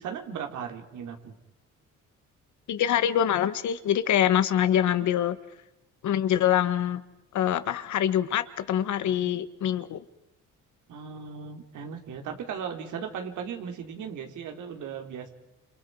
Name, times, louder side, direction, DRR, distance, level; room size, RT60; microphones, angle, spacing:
voice 1, 0.0-1.3 4.9-5.1 9.0-9.4 10.9-15.3, right 7 dB, 80° right, 4 dB, 3.7 m, -37 dB
voice 2, 2.7-5.4 6.0-7.0 7.3-10.0, left 10 dB, 70° left, 12 dB, 1.5 m, -25 dB
29.5 x 27.0 x 4.9 m, 0.90 s
cardioid pair, 90°, 30 cm